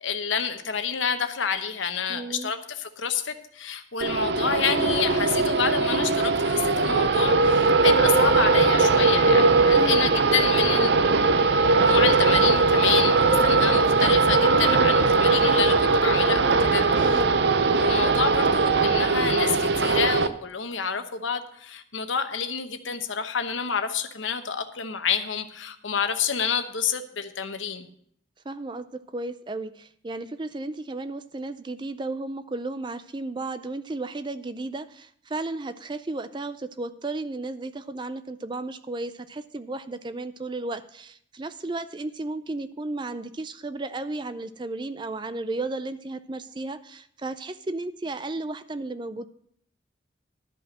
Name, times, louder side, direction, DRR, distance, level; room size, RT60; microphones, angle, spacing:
voice 1, 0.0-11.1 11.8-16.8 17.7-27.9, left 7 dB, 80° left, 8 dB, 1.0 m, -28 dB
voice 2, 2.1-2.5 9.5-10.0 16.7-17.5 28.5-49.2, right 2 dB, 25° right, 12 dB, 0.4 m, -34 dB
sound 1, 4.0-20.3, right 3 dB, 60° right, 0.6 m, -20 dB
12.0 x 5.5 x 7.4 m, 0.67 s
head